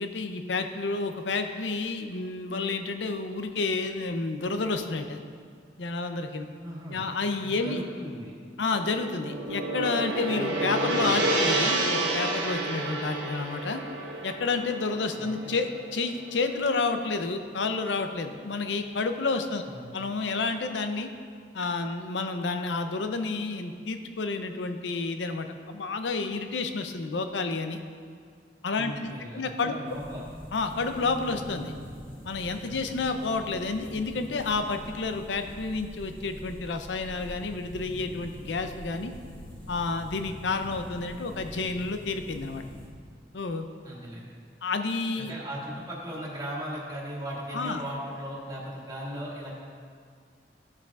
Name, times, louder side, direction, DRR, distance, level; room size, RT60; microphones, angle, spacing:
voice 1, 0.0-5.2 5.8-6.5 6.9-7.8 8.6-13.8 14.2-19.6 19.9-21.1 21.5-27.8 28.6-29.8 30.5-31.7 32.2-39.1 39.7-42.6 43.3-43.7 44.6-45.3 47.5-47.8, left 3 dB, 75° left, 7 dB, 0.6 m, -30 dB
voice 2, 6.6-7.1 7.4-8.3 15.2-15.5 19.7-19.9 28.8-30.2 32.6-32.7 43.8-44.3 45.2-49.5, equal, 20° right, -6 dB, 2.0 m, -38 dB
Gong, 8.7-17.0, right 2 dB, 80° right, 1.1 m, -30 dB
sound 1, 29.9-42.9, equal, 10° left, 1.3 m, -44 dB
13.5 x 6.5 x 2.4 m, 2.1 s
head